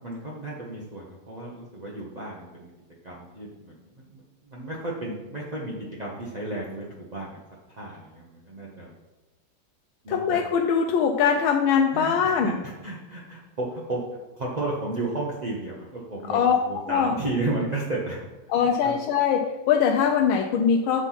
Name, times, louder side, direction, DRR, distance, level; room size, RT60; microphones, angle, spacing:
voice 1, 0.0-2.7 3.0-3.8 4.1-7.4 7.8-8.9 10.0-10.4 11.9-14.0 14.4-18.2 18.8-18.9, right 2 dB, 35° right, -5 dB, 0.6 m, -33 dB
voice 2, 10.1-12.6 16.3-16.6 16.9-17.1 18.5-21.1, left 7 dB, 90° left, 3 dB, 1.4 m, -22 dB
7.8 x 4.1 x 5.7 m, 1.1 s
omnidirectional pair, 2.2 m